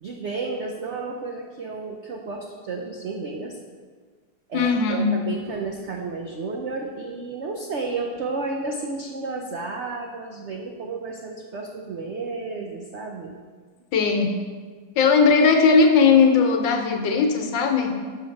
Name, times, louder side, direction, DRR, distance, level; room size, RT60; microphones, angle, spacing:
voice 1, 0.0-3.6 4.5-13.3, right 3 dB, 85° right, 1 dB, 0.6 m, -32 dB
voice 2, 4.5-5.1 13.9-14.3 15.0-17.9, left 5 dB, 80° left, 4 dB, 1.5 m, -18 dB
6.2 x 5.7 x 5.3 m, 1.5 s
omnidirectional pair, 2.0 m